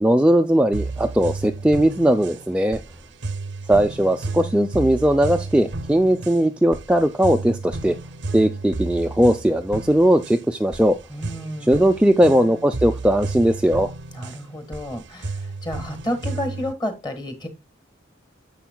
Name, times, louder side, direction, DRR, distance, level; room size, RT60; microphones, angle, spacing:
voice 1, 0.0-2.8 3.7-8.0 8.3-11.0 11.7-13.9, right 1 dB, 5° right, 0.4 m, -18 dB
sound 1, 0.7-16.7, right 3 dB, 60° right, 0.6 m, -33 dB
voice 2, 11.1-11.8 14.1-17.5, equal, 20° left, 1.6 m, -31 dB
10.5 x 7.1 x 2.2 m
head